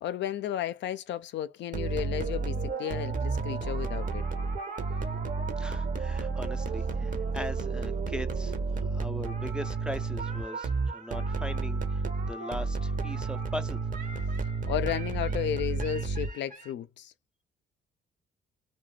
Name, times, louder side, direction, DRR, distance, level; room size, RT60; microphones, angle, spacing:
voice 1, 0.0-4.2 14.7-17.1, left 11 dB, 65° left, 0.4 m, -33 dB
sound 1, 1.7-16.7, right 4 dB, 40° right, 0.6 m, -31 dB
voice 2, 5.6-12.0 12.3-13.8, left 1 dB, 5° right, 0.4 m, -40 dB
2.3 x 2.2 x 3.1 m
cardioid pair, 90°, 20 cm